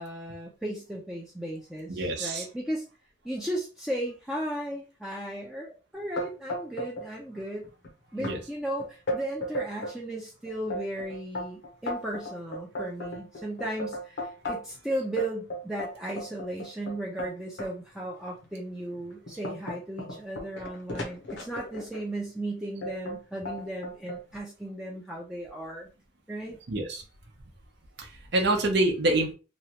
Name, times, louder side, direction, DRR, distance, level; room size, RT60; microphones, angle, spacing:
voice 1, 0.0-2.9 3.2-7.7 8.1-25.9 26.3-26.6, right 1 dB, 5° right, -3 dB, 0.5 m, -35 dB
voice 2, 1.9-2.4 8.2-8.4 26.7-27.0 28.0-29.3, right 2 dB, 60° right, 3 dB, 0.7 m, -26 dB
sound 1, 6.2-7.1 7.4-7.9 8.2-8.4 8.8-10.0 10.5-14.8 15.2-17.7 18.3-18.5 19.0-22.0 22.8-23.2 23.5-24.2, equal, 65° left, 0.8 m, -35 dB
3.0 x 2.3 x 2.9 m, 0.32 s
head